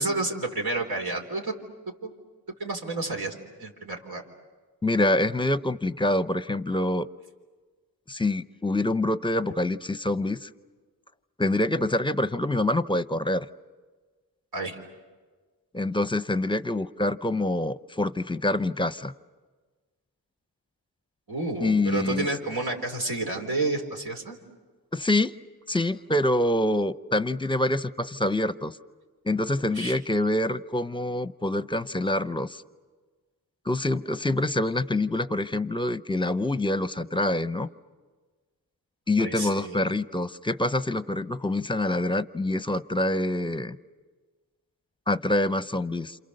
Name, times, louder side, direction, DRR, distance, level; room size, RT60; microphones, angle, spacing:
voice 1, 0.0-1.5 2.0-2.1 2.6-3.3 3.6-4.2 14.5-14.8 21.3-24.4 29.6-30.0 39.2-39.9, right 2 dB, 80° right, 1 dB, 3.8 m, -30 dB
voice 2, 4.8-7.1 8.1-10.5 11.4-13.5 15.7-19.1 21.6-22.3 24.9-25.3 25.7-28.8 29.2-32.6 33.7-37.7 39.1-43.8 45.1-46.2, left 1 dB, 15° left, 13 dB, 0.7 m, -26 dB
29.0 x 27.5 x 6.6 m, 1.4 s
cardioid pair, 60°, 36 cm